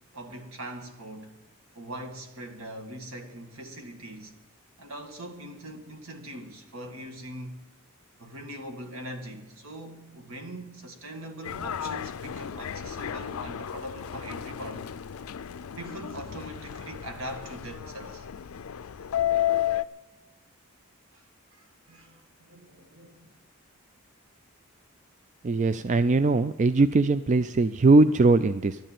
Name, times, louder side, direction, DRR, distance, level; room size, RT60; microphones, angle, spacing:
voice 1, 0.1-1.4 1.8-4.3 4.8-7.6 8.2-14.9 15.7-18.3 21.1-21.2 21.6-23.3, right 1 dB, 70° right, 1.9 m, -41 dB
Subway metro underground, 11.4-19.8, left 10 dB, 80° left, 0.5 m, -32 dB
voice 2, 25.4-28.8, right 3 dB, 35° right, 0.4 m, -21 dB
12.5 x 10.0 x 9.1 m
head